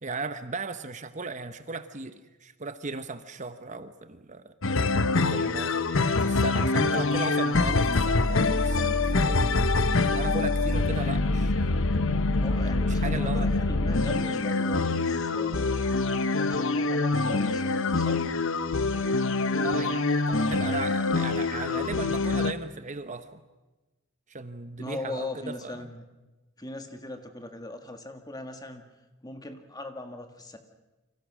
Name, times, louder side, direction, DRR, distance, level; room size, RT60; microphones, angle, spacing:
voice 1, 0.0-4.5 5.3-9.4 10.0-11.8 12.9-13.7 19.5-23.4 24.3-25.9, right 3 dB, 35° right, 11 dB, 0.9 m, -37 dB
sound 1, 4.6-22.5, left 3 dB, 60° left, 1.1 m, -25 dB
voice 2, 12.3-15.8 16.3-18.2 24.8-26.0 26.6-28.9 29.2-30.6, left 2 dB, 20° left, 6 dB, 1.9 m, -40 dB
29.0 x 25.5 x 6.3 m, 1.1 s
head